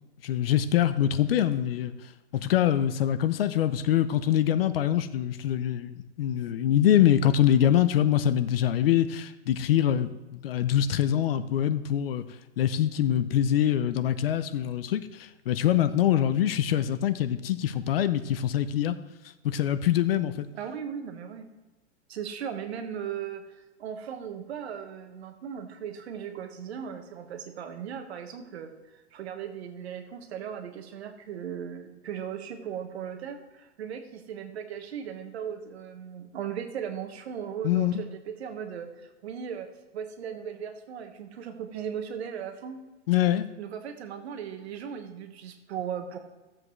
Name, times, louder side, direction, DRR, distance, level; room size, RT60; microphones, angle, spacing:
voice 1, 0.2-1.9 2.3-12.2 12.6-19.0 19.4-20.5 37.6-38.0 43.1-43.5, left 11 dB, 55° left, 13 dB, 0.6 m, -24 dB
voice 2, 20.5-21.5 22.1-39.7 39.9-42.8 43.6-46.2, right 8 dB, 60° right, 6 dB, 1.4 m, -37 dB
14.5 x 7.6 x 3.2 m, 1.1 s
hypercardioid pair, 165°, 36 cm